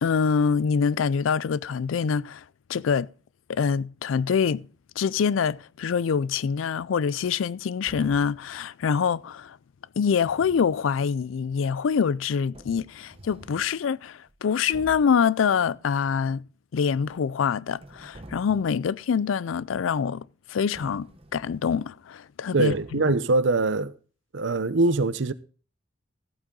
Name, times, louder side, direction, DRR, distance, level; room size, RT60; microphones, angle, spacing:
voice 1, 0.0-2.4 2.7-3.1 3.5-4.7 5.0-9.6 10.0-16.5 16.7-23.1, left 6 dB, 85° left, 0.4 m, -25 dB
sound 1, 7.9-8.5 10.1-10.8 12.0-12.1 12.5-13.7 14.3-14.4 14.7-15.2 16.8-17.4 17.7-18.8 20.7-21.7 22.7-23.2, right 1 dB, 30° right, 0.9 m, -47 dB
voice 2, 22.5-23.9 24.3-25.3, right 3 dB, 70° right, 0.7 m, -23 dB
14.5 x 8.4 x 3.8 m
head